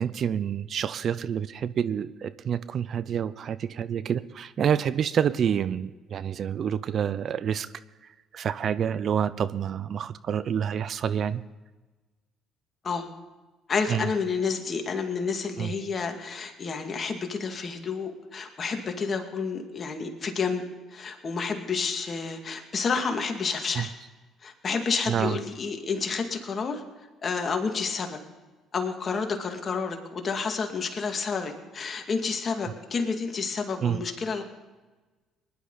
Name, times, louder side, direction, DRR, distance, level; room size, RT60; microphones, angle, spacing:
voice 1, 0.0-7.7 8.3-11.4 13.9-14.1 15.6-15.7 23.8-23.9 25.1-25.4 33.8-34.0, right 8 dB, 55° right, 16 dB, 0.5 m, -28 dB
voice 2, 13.7-20.7 20.9-23.9 24.4-26.8 27.2-28.2 28.7-34.4, left 5 dB, 45° left, 4 dB, 2.2 m, -30 dB
20.5 x 11.5 x 4.0 m, 1.2 s
supercardioid pair, 65°, 0 cm